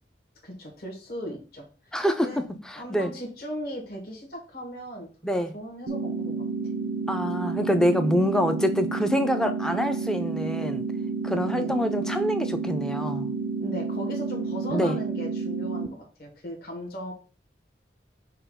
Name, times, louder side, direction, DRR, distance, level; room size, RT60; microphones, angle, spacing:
voice 1, 0.4-2.0 2.2-2.4 2.7-5.1 5.5-6.5 11.4-11.7 13.6-17.1, equal, 55° left, 1.2 m, -37 dB
voice 2, 1.9-2.3 2.7-3.1 5.2-5.5 7.1-10.9 11.2-13.3 14.7-15.0, equal, 5° left, 0.3 m, -25 dB
sound 1, 5.9-15.9, right 4 dB, 80° right, 0.5 m, -30 dB
5.6 x 2.3 x 3.5 m
head